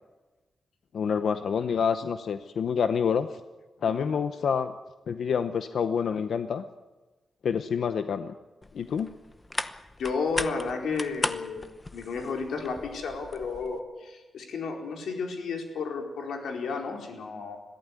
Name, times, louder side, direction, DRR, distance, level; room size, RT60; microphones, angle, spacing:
voice 1, 0.9-3.3 3.8-4.7 5.1-6.6 7.4-8.3 8.7-9.1, left 6 dB, 60° left, 10 dB, 0.8 m, -27 dB
sound 1, 8.6-13.8, left 2 dB, 15° left, 0.9 m, -37 dB
voice 2, 10.0-11.7 11.9-17.6, left 4 dB, 80° left, 2 dB, 4.3 m, -32 dB
21.5 x 15.0 x 9.7 m, 1.2 s
wide cardioid pair, 175°, 0 cm